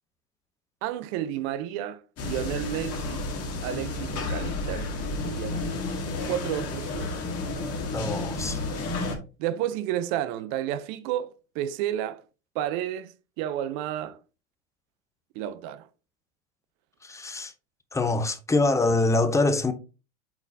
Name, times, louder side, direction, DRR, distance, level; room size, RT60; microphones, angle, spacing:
voice 1, 0.8-3.2 3.6-4.9 5.2-5.8 6.3-7.1 9.4-11.3 11.5-12.2 12.5-14.2 15.3-15.9, right 11 dB, 50° right, 0.7 m, -31 dB
sound 1, 2.2-9.2, left 3 dB, 35° left, 1.9 m, -31 dB
voice 2, 7.9-8.6 17.0-17.5 17.9-19.7, left 2 dB, 5° left, 0.7 m, -24 dB
8.7 x 4.0 x 2.7 m
hypercardioid pair, 95°, 41 cm